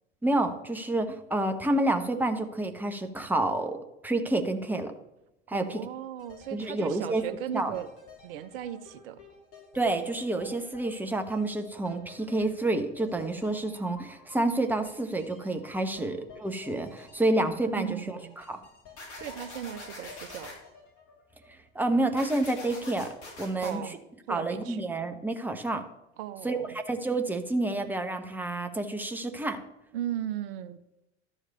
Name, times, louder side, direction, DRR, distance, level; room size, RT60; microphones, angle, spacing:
voice 1, 0.2-4.9 5.5-5.8 6.5-7.2 7.5-7.7 9.7-18.6 21.7-24.0 24.3-25.9 26.4-29.6, right 2 dB, 5° right, 6 dB, 1.0 m, -29 dB
voice 2, 5.5-7.9 8.2-9.2 15.9-16.2 17.8-18.4 19.1-20.6 23.6-24.0 24.3-24.8 26.2-26.8 29.9-30.8, right 11 dB, 55° right, 12 dB, 0.9 m, -37 dB
sound 1, 6.2-22.1 22.4-22.5, left 4 dB, 40° left, 3.7 m, -53 dB
sound 2, 19.0-20.6 22.2-23.7, left 2 dB, 70° left, 3.1 m, -44 dB
12.5 x 4.9 x 6.7 m, 0.89 s
figure-of-eight pair, 80°, 34 cm